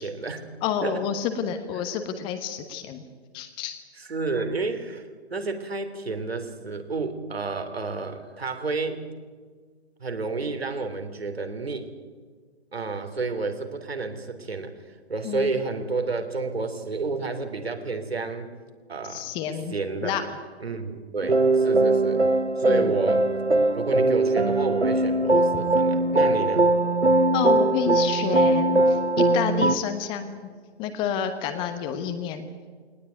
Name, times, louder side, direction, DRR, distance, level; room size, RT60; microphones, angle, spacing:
voice 1, 0.0-0.5 0.8-1.0 4.0-5.0 5.3-9.0 10.0-11.9 12.7-14.7 15.1-18.5 18.9-19.3 19.7-20.3 20.6-22.2 22.6-23.3 23.7-26.7, right 3 dB, 65° right, 6 dB, 3.4 m, -30 dB
voice 2, 0.6-3.0 3.3-3.8 15.2-15.5 19.1-19.7 20.0-20.2 22.7-22.9 27.3-30.3 30.8-32.5, left 8 dB, 15° left, 8 dB, 1.2 m, -29 dB
sound 1, 21.2-29.8, right 2 dB, 85° right, 1.2 m, -21 dB
21.0 x 19.5 x 9.3 m, 1.5 s
figure-of-eight pair, 130°, 33 cm